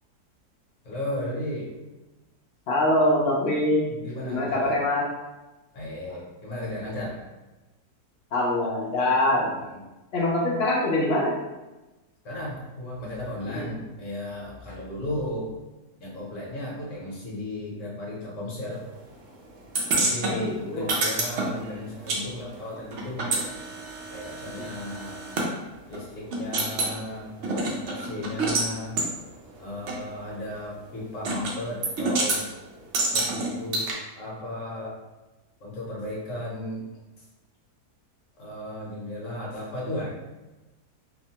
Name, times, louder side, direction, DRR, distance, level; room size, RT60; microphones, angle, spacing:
voice 1, 0.8-1.7 3.9-4.8 5.7-7.2 9.7-9.8 12.2-15.5 16.0-18.8 19.9-23.5 24.1-25.3 25.8-29.0 29.6-32.4 33.1-33.8 34.1-35.0 35.6-36.8 38.4-40.2, left 1 dB, 55° left, -5 dB, 1.0 m, -35 dB
voice 2, 2.7-3.9 4.2-5.1 8.3-9.5 10.1-11.3 13.5-13.7 20.2-20.9 24.5-24.7, left 1 dB, 75° left, -3 dB, 0.5 m, -24 dB
sound 1, 19.7-22.2 22.5-25.5 25.9-26.0 26.3-26.9 27.4-28.7 29.0-29.1 29.9-30.0 31.2-31.5 31.8-32.4 32.9-33.9, right 2 dB, 75° right, 0.6 m, -27 dB
2.8 x 2.1 x 2.8 m, 1.1 s
omnidirectional pair, 1.8 m